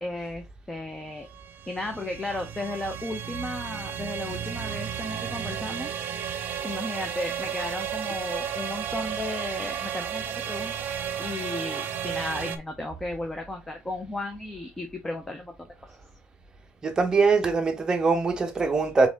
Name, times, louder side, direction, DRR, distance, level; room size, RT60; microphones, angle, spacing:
voice 1, 0.0-1.3 1.7-6.0 6.6-10.9 11.2-15.7, left 2 dB, 10° left, 0.7 m, -34 dB
sound 1, 1.2-12.6, right 9 dB, 55° right, 0.7 m, -33 dB
voice 2, 16.8-19.1, right 4 dB, 20° right, 0.9 m, -22 dB
4.1 x 3.6 x 3.5 m
cardioid pair, 140°, 4 cm